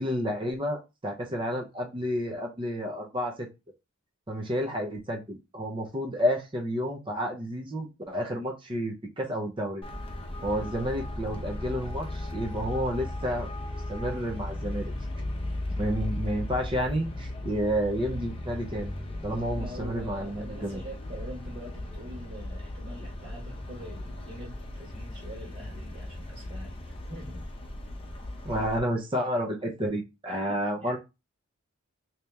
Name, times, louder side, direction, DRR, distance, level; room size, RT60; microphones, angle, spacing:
voice 1, 0.0-3.5 4.3-9.8 10.4-13.5 13.9-14.9 15.8-18.9 19.2-20.8 28.4-31.0, equal, 25° right, 0.6 m, -30 dB
Traffic noise roadway noise, 9.8-28.8, left 1 dB, 25° left, 0.7 m, -36 dB
voice 2, 19.5-27.5 30.3-31.0, equal, 40° right, 1.4 m, -44 dB
3.3 x 2.9 x 3.4 m
head